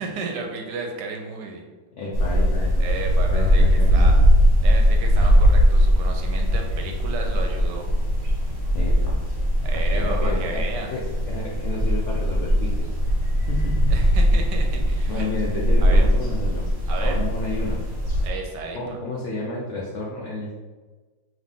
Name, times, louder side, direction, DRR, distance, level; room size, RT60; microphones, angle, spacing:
voice 1, 0.0-1.6 2.8-4.1 4.6-7.9 9.6-10.9 13.9-15.3 15.8-16.0 16.9-17.2 18.2-19.0, right 4 dB, 75° right, 2 dB, 1.1 m, -33 dB
voice 2, 2.0-2.8 3.3-4.3 8.7-9.2 9.7-12.9 13.5-13.9 15.1-16.7 17.0-17.8 18.7-20.6, left 2 dB, 75° left, -4 dB, 0.6 m, -31 dB
sound 1, 2.1-18.3, equal, 35° right, 1.2 m, -20 dB
3.8 x 3.1 x 3.6 m, 1.3 s
omnidirectional pair, 2.0 m